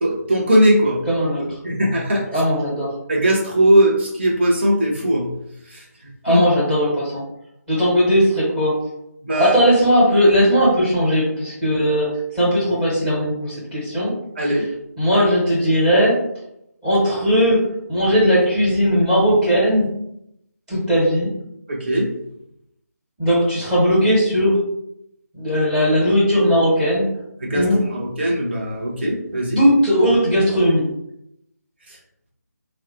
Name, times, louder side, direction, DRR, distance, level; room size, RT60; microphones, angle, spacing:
voice 1, 0.0-1.0 1.6-2.4 3.1-5.3 5.7-5.8 6.3-6.4 9.2-9.5 14.4-14.7 21.7-22.1 27.4-29.6, right 1 dB, 40° right, -1 dB, 0.8 m, -19 dB
voice 2, 1.1-1.5 2.3-2.9 6.2-7.2 7.7-8.8 9.4-12.1 12.3-14.1 14.4-14.6 15.0-16.1 16.8-17.6 17.9-19.9 20.7-21.3 23.2-24.6 25.3-27.1 27.5-27.8 29.6-30.9, equal, 5° right, -6 dB, 0.8 m, -17 dB
3.6 x 2.1 x 3.0 m, 0.79 s
figure-of-eight pair, 155°, 9 cm